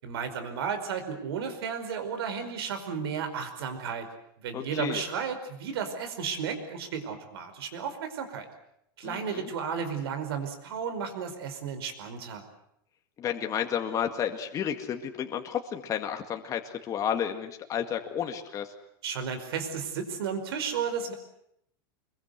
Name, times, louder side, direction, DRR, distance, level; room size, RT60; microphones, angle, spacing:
voice 1, 0.0-4.1 4.4-8.5 9.0-12.4 19.0-21.1, right 6 dB, 80° right, 8 dB, 5.0 m, -33 dB
voice 2, 4.5-5.0 9.0-9.5 13.2-18.7, left 9 dB, 25° left, 5 dB, 2.0 m, -32 dB
25.5 x 22.0 x 8.1 m, 0.75 s
supercardioid pair, 145°, 13 cm